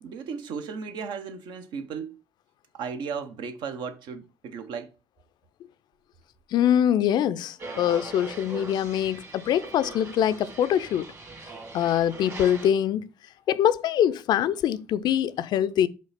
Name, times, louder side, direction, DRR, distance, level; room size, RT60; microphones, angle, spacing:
voice 1, 0.0-2.2 2.7-4.9, right 6 dB, 60° right, 0.8 m, -35 dB
voice 2, 6.5-11.1 11.7-13.1 13.5-15.9, left 10 dB, 55° left, 0.4 m, -24 dB
sound 1, 7.6-12.7, right 3 dB, 35° right, 1.9 m, -41 dB
5.3 x 3.4 x 5.6 m
figure-of-eight pair, 45°, 9 cm